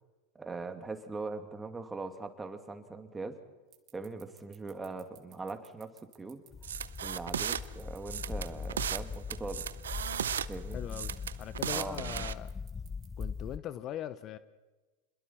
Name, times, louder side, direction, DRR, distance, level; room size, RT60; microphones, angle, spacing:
voice 1, 0.3-3.4 3.9-6.4 7.0-9.6 10.5-10.8 11.7-12.3, right 3 dB, 15° right, 7 dB, 2.3 m, -41 dB
sound 1, 3.7-13.2, right 15 dB, 45° right, 2.1 m, -58 dB
sound 2, 6.5-13.6, left 5 dB, 20° left, 0.6 m, -41 dB
sound 3, 6.6-7.6 8.1-9.0 9.3-10.5 10.9-12.3, right 9 dB, 90° right, 0.6 m, -35 dB
voice 2, 10.7-12.5 13.2-14.4, left 11 dB, 45° left, 14 dB, 0.9 m, -40 dB
27.5 x 22.0 x 4.4 m, 1.2 s
hypercardioid pair, 100°, 0 cm